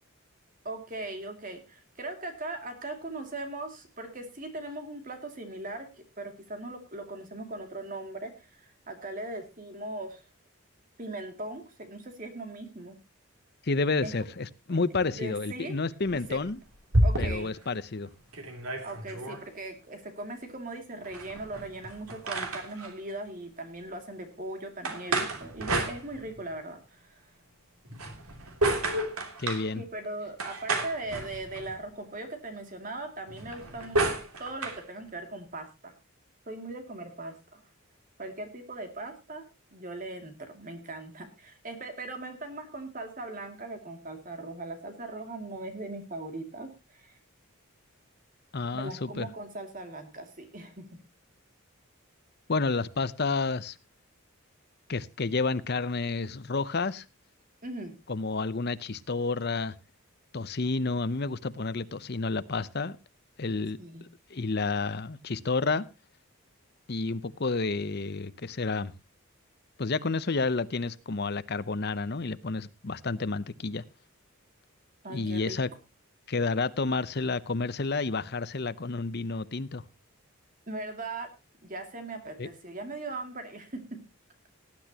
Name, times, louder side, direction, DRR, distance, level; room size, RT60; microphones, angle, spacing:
voice 1, 0.6-5.9 6.2-10.3 11.0-13.0 14.0-14.1 15.1-15.7 16.1-16.4 17.0-17.5 18.8-27.3 29.8-35.9 36.5-37.6 38.2-39.4 39.7-47.2 48.7-51.0 57.6-57.9 63.8-64.0 75.0-75.6 80.7-81.3 81.6-83.8, right 2 dB, 40° right, 2.5 m, -39 dB
voice 2, 13.6-16.6 17.2-18.1 29.4-29.8 48.5-49.3 52.5-53.8 54.9-57.0 58.1-59.7 60.3-63.0 63.4-63.8 64.3-65.9 66.9-68.9 69.8-73.8 75.1-75.7 76.3-79.8 82.4-82.5, left 3 dB, 50° left, 0.7 m, -30 dB
sound 1, 16.1-17.6 18.0-18.1 18.3-19.4 21.0-22.9 24.8-26.5 27.9-29.7 30.4-31.8 33.3-34.8, right 2 dB, 85° right, 3.0 m, -31 dB
19.0 x 10.5 x 2.9 m
head